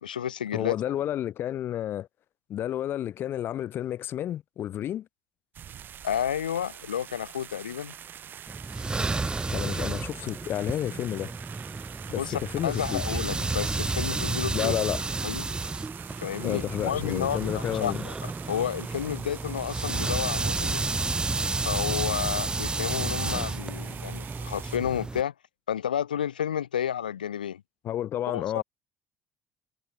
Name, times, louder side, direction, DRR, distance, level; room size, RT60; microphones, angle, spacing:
voice 1, 0.0-0.8 6.0-7.9 12.2-14.8 15.2-15.5 16.1-20.8 21.6-25.3 25.7-27.6 28.3-28.6, left 9 dB, 85° left, 0.4 m, -31 dB
voice 2, 0.5-2.1 2.5-5.1 9.5-11.3 12.1-13.0 14.5-15.0 16.4-18.1 27.8-28.6, left 11 dB, 55° left, 1.1 m, -31 dB
sound 1, 5.5-24.8, right 9 dB, 50° right, 0.9 m, -44 dB
sound 2, 8.5-25.2, right 3 dB, 20° right, 0.7 m, -31 dB
hypercardioid pair, 55°, 5 cm